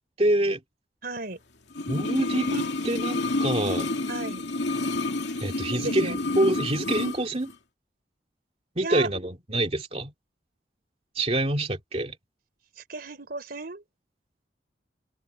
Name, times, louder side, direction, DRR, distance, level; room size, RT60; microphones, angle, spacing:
voice 1, 0.2-0.6 1.9-3.9 5.4-7.5 8.8-10.1 11.2-12.1, right 1 dB, 35° right, 2.4 m, -26 dB
voice 2, 1.0-1.4 4.1-4.4 5.7-6.6 8.8-9.1 12.8-13.8, right 2 dB, 60° right, 4.0 m, -35 dB
sound 1, 1.7-7.2 7.5-7.6, left 2 dB, 80° left, 2.5 m, -29 dB
head